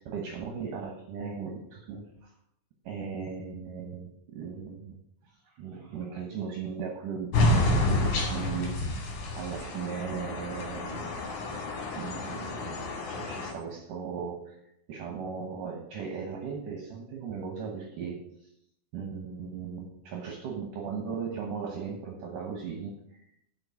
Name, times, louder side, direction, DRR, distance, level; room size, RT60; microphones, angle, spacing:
voice 1, 0.0-2.3 2.8-5.0 5.5-8.8 9.4-11.1 11.9-14.6 14.9-18.2 18.9-23.3, right 6 dB, 65° right, 1 dB, 2.4 m, -37 dB
sound 1, 7.3-13.5, left 2 dB, 70° left, 4.0 m, -29 dB
8.0 x 6.4 x 7.0 m, 0.76 s
omnidirectional pair, 4.8 m